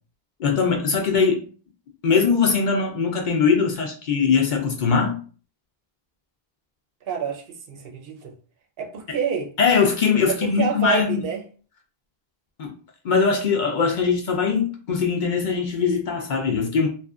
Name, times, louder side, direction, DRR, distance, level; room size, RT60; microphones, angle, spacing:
voice 1, 0.4-1.4 2.0-5.2 9.6-11.2 12.6-12.7 13.0-16.9, left 5 dB, 60° left, 0.6 m, -21 dB
voice 2, 7.1-8.3 8.8-9.5 10.3-11.4, right 7 dB, 70° right, 0.8 m, -28 dB
2.7 x 2.4 x 2.3 m
omnidirectional pair, 1.0 m